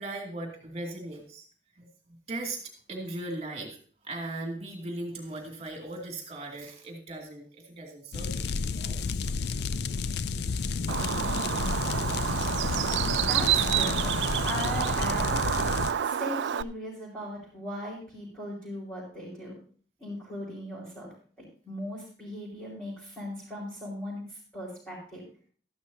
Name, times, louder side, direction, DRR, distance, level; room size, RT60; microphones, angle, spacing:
voice 1, 0.0-1.4 1.7-3.8 4.0-9.0 9.2-9.4, right 2 dB, 35° right, 2 dB, 2.4 m, -39 dB
sound 1, 8.1-15.9, left 4 dB, 65° left, 0.4 m, -31 dB
Bird, 10.9-16.6, right 9 dB, 80° right, 0.4 m, -28 dB
voice 2, 12.9-14.1 14.4-15.3 16.0-19.6 20.0-21.1 21.4-25.2, equal, 10° left, -9 dB, 4.6 m, -38 dB
13.5 x 11.0 x 2.8 m, 0.43 s
head